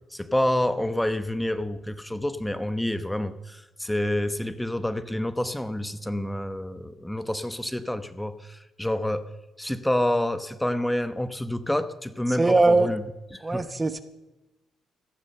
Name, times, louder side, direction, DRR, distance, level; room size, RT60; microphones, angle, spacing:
voice 1, 0.1-9.3 9.6-13.0 13.3-13.6, left 1 dB, 5° left, 12 dB, 1.0 m, -28 dB
voice 2, 12.4-12.9 13.4-14.0, right 3 dB, 20° right, 12 dB, 0.9 m, -20 dB
14.5 x 14.0 x 6.7 m, 1.0 s
cardioid pair, 90°, 0 cm